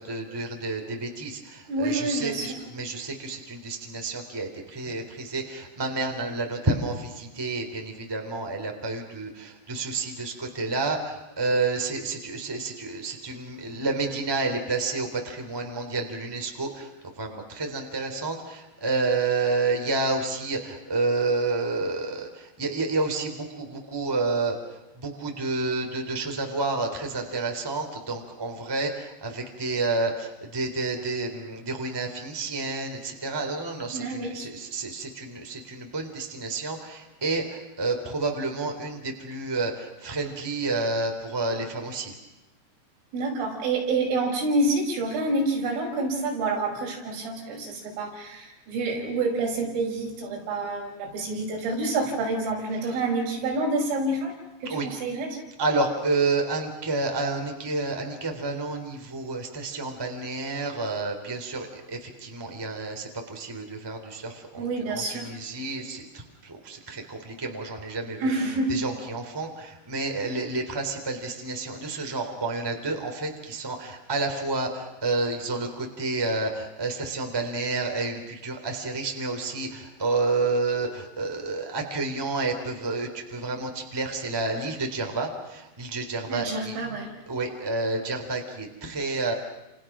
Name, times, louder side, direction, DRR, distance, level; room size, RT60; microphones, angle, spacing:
voice 1, 0.0-16.9 17.1-42.1 54.6-54.9 55.6-68.3 68.7-86.8 87.3-89.3, right 3 dB, 5° right, 3 dB, 2.8 m, -30 dB
voice 2, 1.7-2.5 33.9-34.5 43.1-54.3 54.6-55.4 64.6-65.3 68.2-68.7 86.3-87.1, right 2 dB, 80° right, 0 dB, 8.3 m, -28 dB
30.0 x 29.0 x 6.3 m, 0.98 s
omnidirectional pair, 5.7 m